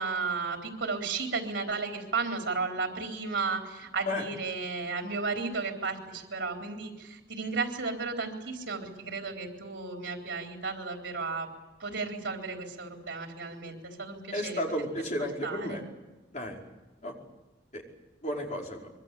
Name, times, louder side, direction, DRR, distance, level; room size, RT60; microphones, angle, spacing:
voice 1, 0.0-11.5 11.8-14.6 15.4-15.8, right 4 dB, 85° right, 2 dB, 4.0 m, -34 dB
voice 2, 14.3-15.8 16.3-16.6 17.0-17.1 17.7-17.8 18.2-18.9, left 1 dB, 40° left, -1 dB, 5.1 m, -33 dB
25.0 x 23.5 x 8.3 m, 1.1 s
head